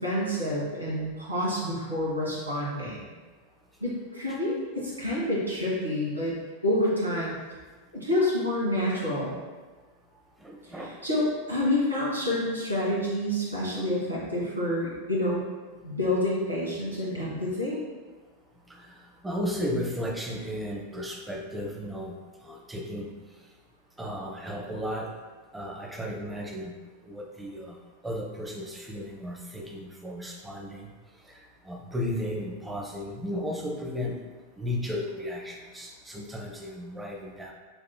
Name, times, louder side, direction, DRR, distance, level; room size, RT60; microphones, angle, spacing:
voice 1, 0.0-3.0 3.8-6.3 6.6-7.4 7.9-9.4 11.0-15.4 15.8-17.8, left 1 dB, 80° right, -6 dB, 1.3 m, -28 dB
voice 2, 10.4-10.9 18.7-19.0 19.2-23.2 24.0-25.2 25.5-26.8 27.1-27.8 28.0-30.9 31.3-34.2 34.6-37.5, equal, 10° right, -1 dB, 0.6 m, -34 dB
5.9 x 3.0 x 2.2 m, 1.4 s
figure-of-eight pair, 90°, 0 cm